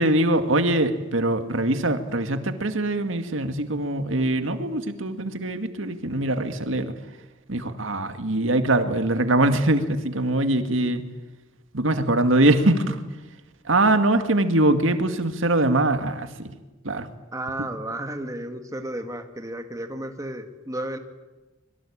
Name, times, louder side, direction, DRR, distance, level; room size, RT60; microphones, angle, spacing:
voice 1, 0.0-6.9 7.5-11.0 11.7-13.0 13.6-16.5 16.8-17.1, right 1 dB, 75° right, 8 dB, 2.1 m, -22 dB
voice 2, 17.3-21.0, right 1 dB, 15° right, 6 dB, 1.9 m, -33 dB
25.5 x 23.0 x 8.7 m, 1.1 s
head